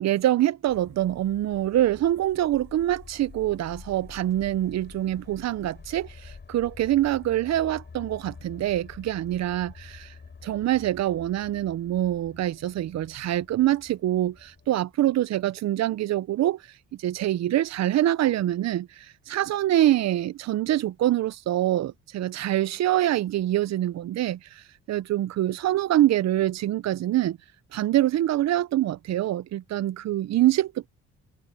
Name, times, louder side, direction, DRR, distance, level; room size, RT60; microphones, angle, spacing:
voice 1, 0.0-10.1 10.4-16.6 17.0-24.6 24.9-27.4 27.7-30.9, right 13 dB, 60° right, 0.6 m, -25 dB
sound 1, 0.7-14.8, left 5 dB, 35° left, 7.8 m, -48 dB
cardioid pair, 90°, 30 cm